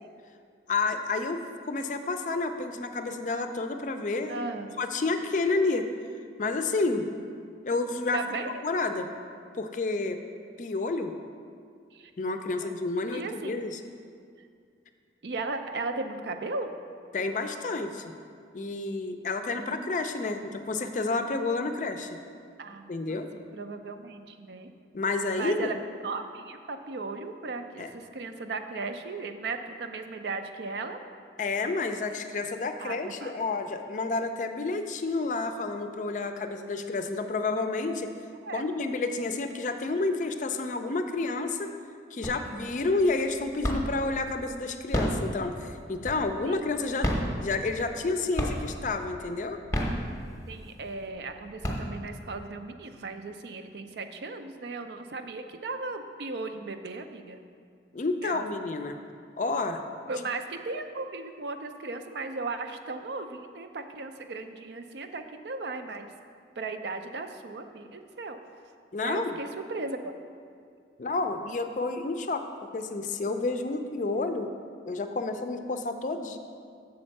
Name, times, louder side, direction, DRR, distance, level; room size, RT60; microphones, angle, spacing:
voice 1, 0.7-1.4 1.7-4.5 4.8-5.9 6.4-7.1 7.6-8.2 8.6-9.1 9.5-10.2 10.6-11.1 12.2-13.8 17.1-18.1 18.5-22.2 22.9-23.3 24.9-25.7 27.8-27.9 31.4-38.1 38.5-41.7 42.1-47.1 47.4-49.6 57.9-59.0 59.4-59.8 68.9-69.4 71.0-72.5 72.7-74.5 74.8-76.4, left 3 dB, 45° left, 7 dB, 0.4 m, -30 dB
voice 2, 4.3-4.8 8.1-8.6 11.9-12.1 12.6-12.7 13.1-13.6 15.2-16.7 19.5-20.0 22.6-24.7 25.3-31.0 32.8-33.5 38.4-38.6 42.3-42.7 46.5-46.6 50.5-57.4 58.2-58.5 60.1-66.1 66.6-68.4 69.0-70.1, right 3 dB, 75° right, 7 dB, 0.5 m, -36 dB
sound 1, 42.2-42.7 43.1-44.1 44.7-46.5 46.9-48.1 48.4-48.9 49.5-50.6 51.1-51.2 51.4-52.3, equal, 15° left, 0.7 m, -30 dB
7.0 x 4.4 x 6.4 m, 2.3 s
head